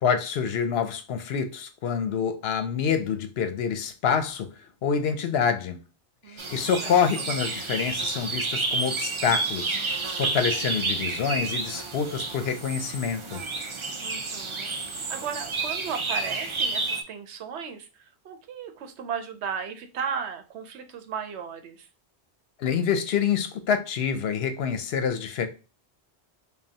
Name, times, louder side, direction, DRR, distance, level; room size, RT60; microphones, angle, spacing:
voice 1, 0.0-4.5 4.8-5.8 6.3-9.8 10.2-13.4 22.6-25.5, left 7 dB, 70° left, 0.8 m, -26 dB
voice 2, 6.2-7.2 14.0-21.9, right 7 dB, 80° right, 0.9 m, -36 dB
sound 1, 6.4-17.0, right 3 dB, 45° right, 0.4 m, -30 dB
5.2 x 2.3 x 2.8 m
omnidirectional pair, 1.1 m